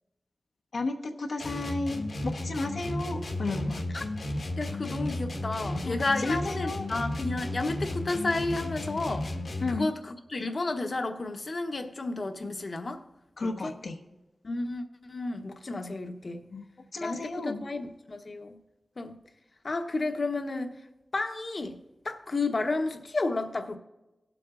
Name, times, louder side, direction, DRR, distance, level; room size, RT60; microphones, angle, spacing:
voice 1, 0.7-3.8 5.8-6.9 9.6-9.9 13.4-14.0 16.5-16.6 16.9-17.6, left 2 dB, 90° left, 1 dB, 1.1 m, -33 dB
sound 1, 1.4-9.9, left 1 dB, 70° left, 1.3 m, -34 dB
voice 2, 4.6-9.3 9.7-13.0 13.4-13.7 14.4-16.5 17.0-18.6 19.0-19.2 19.6-20.8 21.1-21.8 22.0-23.8, left 2 dB, 55° left, 6 dB, 1.0 m, -32 dB
18.5 x 7.7 x 2.5 m, 1.0 s
wide cardioid pair, 70°, 0 cm